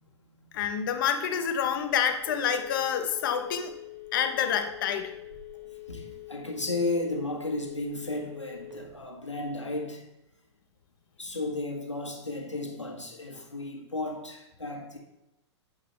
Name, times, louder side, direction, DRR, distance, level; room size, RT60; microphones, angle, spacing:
voice 1, 0.5-3.7 4.1-5.1, left 8 dB, 45° left, 6 dB, 1.0 m, -28 dB
Telephone, 2.0-9.0, left 11 dB, 70° right, 2.6 m, -45 dB
voice 2, 5.9-10.0 11.2-15.0, left 2 dB, 85° left, 0 dB, 1.6 m, -34 dB
8.8 x 5.2 x 4.4 m, 0.89 s
figure-of-eight pair, 110°, 15 cm